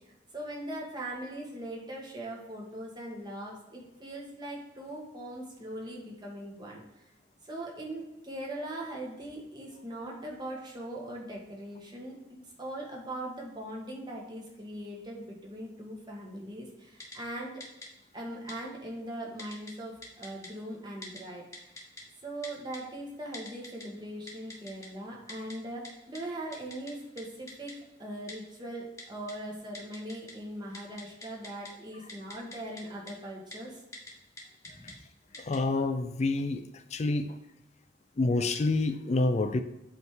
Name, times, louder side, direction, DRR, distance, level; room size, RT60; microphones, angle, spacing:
voice 1, 0.3-6.8 7.4-17.6 18.1-21.8 22.2-33.8 34.6-34.9, right 1 dB, 25° right, -2 dB, 1.6 m, -40 dB
Typing, 17.0-17.2 17.6-17.9 18.5-18.6 19.4-19.7 20.0-20.5 21.0-21.2 21.5-22.0 22.4-22.8 23.3-23.8 24.3-24.9 25.3-25.5 25.8-25.9 26.1-26.2 26.5-26.9 27.2-27.3 27.5-27.7 28.3-28.4 29.0-29.3 29.7-30.3 30.6-31.7 32.1-32.8 33.1-33.2 33.5-33.6 33.9-34.1 34.4-34.9 35.3-35.6, left 2 dB, 20° left, 1.3 m, -44 dB
voice 2, 35.4-36.6 36.9-37.3 38.2-39.6, left 2 dB, 40° left, 9 dB, 0.4 m, -27 dB
8.1 x 3.6 x 4.6 m, 0.94 s
head